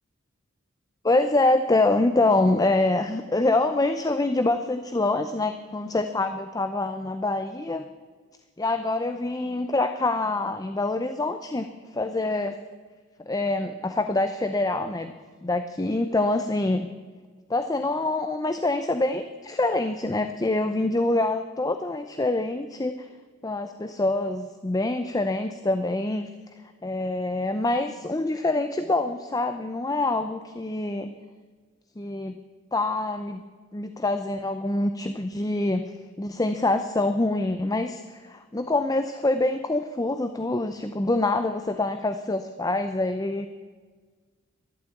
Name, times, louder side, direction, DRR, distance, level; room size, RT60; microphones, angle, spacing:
voice 1, 1.0-7.9 8.6-12.6 13.3-15.1 15.4-16.9 17.5-23.1 23.4-26.3 26.8-31.1 32.0-32.4 32.7-33.4 33.7-35.8 36.2-43.5, left 2 dB, 15° left, 9 dB, 0.5 m, -25 dB
12.0 x 11.5 x 8.4 m, 1.5 s
head